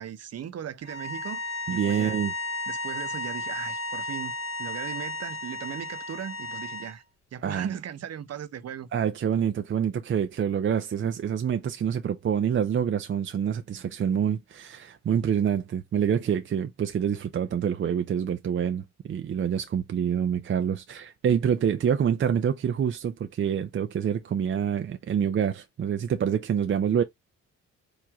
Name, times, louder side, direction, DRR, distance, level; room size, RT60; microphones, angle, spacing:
voice 1, 0.0-2.2 2.7-4.3 4.6-7.0 7.3-8.9, right 9 dB, 55° right, 0.9 m, -38 dB
sound 1, 0.8-6.9, left 2 dB, 60° left, 1.4 m, -34 dB
voice 2, 1.7-2.3 7.4-7.7 8.9-27.0, right 8 dB, 40° right, 0.6 m, -26 dB
4.8 x 2.7 x 3.4 m
cardioid pair, 90°, 30 cm